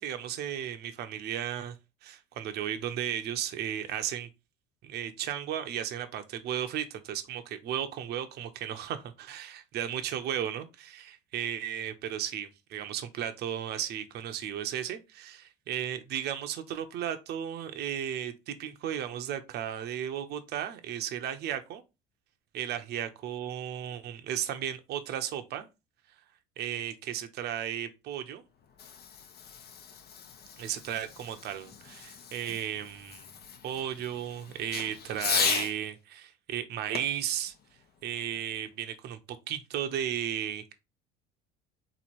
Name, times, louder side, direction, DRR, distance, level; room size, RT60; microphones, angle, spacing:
voice 1, 0.0-1.8 2.0-4.3 4.8-21.8 22.5-25.7 26.6-28.4 30.6-33.3 33.6-37.5 38.0-39.2 39.5-40.7, right 10 dB, 55° right, 0.8 m, -35 dB
Fireworks, 28.5-35.8 36.9-38.6, left 7 dB, 50° left, 0.9 m, -36 dB
4.0 x 3.1 x 4.3 m
supercardioid pair, 95°, 20 cm